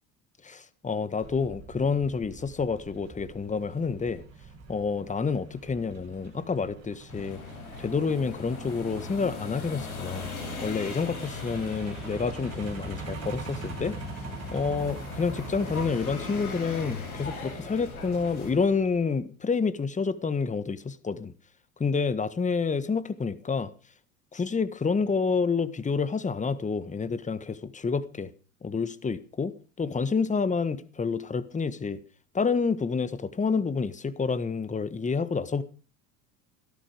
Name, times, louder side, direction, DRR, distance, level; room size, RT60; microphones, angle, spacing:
voice 1, 0.4-4.2 4.7-7.4 7.8-10.3 10.6-13.9 14.5-21.3 21.8-23.7 24.3-28.3 28.6-32.0 32.3-35.6, left 5 dB, 15° left, 1.4 m, -28 dB
Truck, 1.2-19.0, right 4 dB, 35° right, 7.6 m, -44 dB
sound 1, 7.1-18.5, left 4 dB, 85° left, 7.4 m, -39 dB
17.0 x 13.0 x 5.1 m
hypercardioid pair, 70°, 43 cm